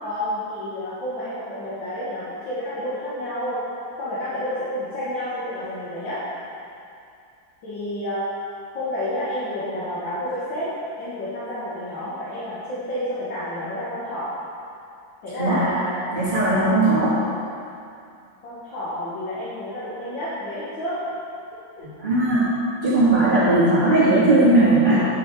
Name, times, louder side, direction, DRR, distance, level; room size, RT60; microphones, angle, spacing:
voice 1, 0.0-3.6 4.0-6.2 7.6-8.3 8.7-10.7 11.0-14.3 15.2-16.2 18.4-21.0 21.8-21.9, left 1 dB, 75° left, -10 dB, 2.5 m, -30 dB
voice 2, 16.1-17.2 22.0-22.5 22.8-25.0, right 2 dB, 25° right, -12 dB, 2.1 m, -18 dB
9.8 x 8.5 x 4.8 m, 2.5 s
omnidirectional pair, 2.1 m